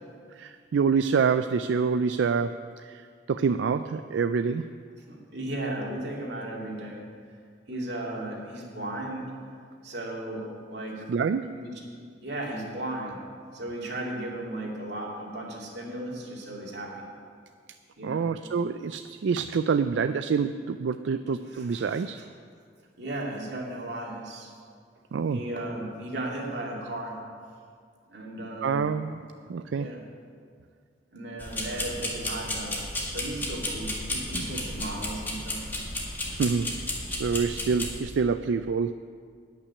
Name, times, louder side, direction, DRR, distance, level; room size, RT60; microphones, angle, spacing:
voice 1, 0.4-4.7 11.1-11.6 18.0-22.2 25.1-25.4 28.6-29.2 29.5-29.9 36.4-36.8 37.1-38.9, right 5 dB, 85° right, 10 dB, 0.4 m, -27 dB
voice 2, 5.1-7.0 7.7-9.3 9.8-11.0 11.6-11.7 12.2-13.3 13.5-17.1 18.0-18.3 21.5-22.0 23.0-24.5 25.3-27.2 28.1-28.9 29.7-30.0 31.1-32.8 33.1-35.6, right 1 dB, 65° right, -2 dB, 2.6 m, -35 dB
sound 1, 31.4-38.0, left 1 dB, 10° left, 1.8 m, -33 dB
13.5 x 6.0 x 9.7 m, 2.1 s
head